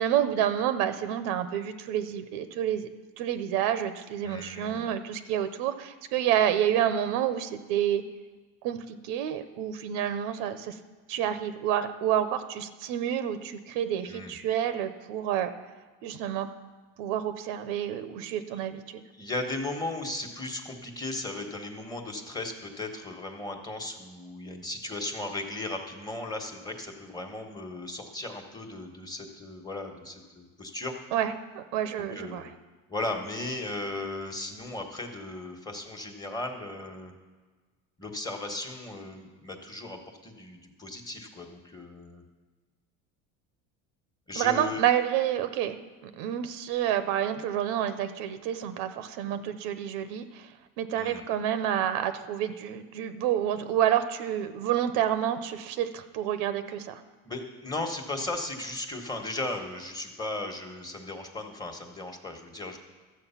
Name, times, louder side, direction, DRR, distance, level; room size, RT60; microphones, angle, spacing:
voice 1, 0.0-2.9 3.2-8.0 8.6-10.8 11.1-15.5 16.0-16.5 17.0-19.0 31.1-32.5 44.3-50.5 50.8-57.0, right 10 dB, 80° right, 10 dB, 0.9 m, -29 dB
voice 2, 4.2-4.9 14.0-14.3 19.1-31.0 32.1-32.5 32.9-37.1 38.0-42.2 44.3-44.8 50.9-51.2 57.2-62.8, left 2 dB, 10° left, 3 dB, 1.3 m, -36 dB
13.0 x 7.7 x 5.7 m, 1.3 s
cardioid pair, 140°, 33 cm